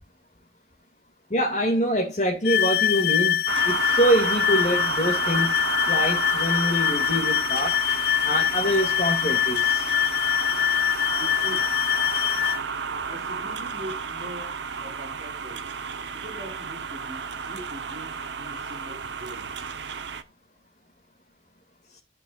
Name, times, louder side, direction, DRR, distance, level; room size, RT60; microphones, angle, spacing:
voice 1, 1.3-7.8 8.2-9.9, equal, 40° left, 2.2 m, -25 dB
sound 1, 2.4-12.6, left 11 dB, 60° left, 0.5 m, -24 dB
sound 2, 3.5-20.2, right 5 dB, 80° right, 0.9 m, -31 dB
voice 2, 11.2-11.8 13.1-15.8 16.1-19.5, equal, 40° right, 3.8 m, -42 dB
16.0 x 6.2 x 2.4 m
head